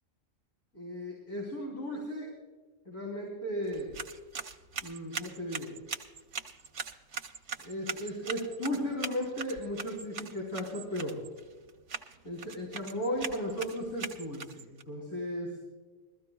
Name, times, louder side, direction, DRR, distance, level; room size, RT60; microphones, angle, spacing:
voice 1, 0.7-2.3 2.8-3.9 4.8-5.7 7.6-11.2 12.2-15.5, equal, 70° left, -4 dB, 3.5 m, -35 dB
sound 1, 3.6-14.8, right 5 dB, 85° right, 1.5 m, -42 dB
21.5 x 14.5 x 2.3 m, 1.4 s
omnidirectional pair, 1.4 m